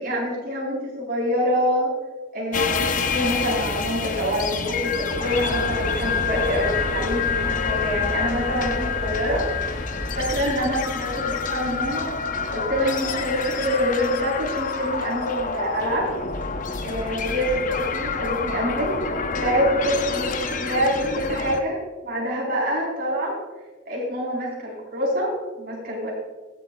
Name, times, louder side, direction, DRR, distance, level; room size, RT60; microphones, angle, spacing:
voice 1, 0.0-1.9 2.3-9.4 10.2-12.1 12.5-16.1 16.8-18.9 19.3-23.3 23.9-26.1, equal, 50° right, -4 dB, 3.9 m, -26 dB
sound 1, 2.5-21.6, left 5 dB, 45° left, 0.7 m, -28 dB
sound 2, 5.2-10.5, left 1 dB, 60° left, 2.4 m, -31 dB
23.0 x 7.8 x 2.3 m, 1.3 s
head